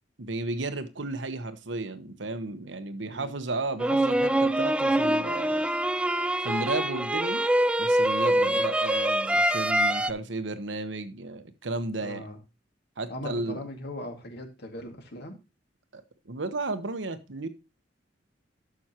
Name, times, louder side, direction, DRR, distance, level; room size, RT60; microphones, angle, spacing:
voice 1, 0.2-5.7 6.4-7.4 7.8-12.2 13.0-13.6 15.9-17.5, right 2 dB, 75° right, 1.1 m, -33 dB
sound 1, 3.8-10.1, right 1 dB, 5° right, 0.3 m, -24 dB
voice 2, 12.0-12.4 13.1-15.4, left 1 dB, 60° left, 2.2 m, -39 dB
12.0 x 6.3 x 2.9 m
head